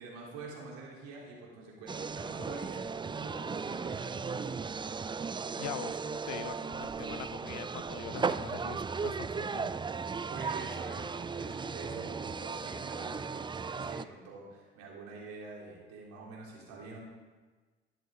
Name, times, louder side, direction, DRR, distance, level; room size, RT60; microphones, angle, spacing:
voice 1, 0.0-4.8 10.0-17.0, right 3 dB, 70° right, -3 dB, 3.9 m, -47 dB
sound 1, 1.9-14.0, right 5 dB, 15° right, 0.4 m, -36 dB
voice 2, 5.6-9.7, left 14 dB, 65° left, 14 dB, 0.6 m, -43 dB
12.0 x 10.5 x 4.0 m, 1.4 s
hypercardioid pair, 55°, 30 cm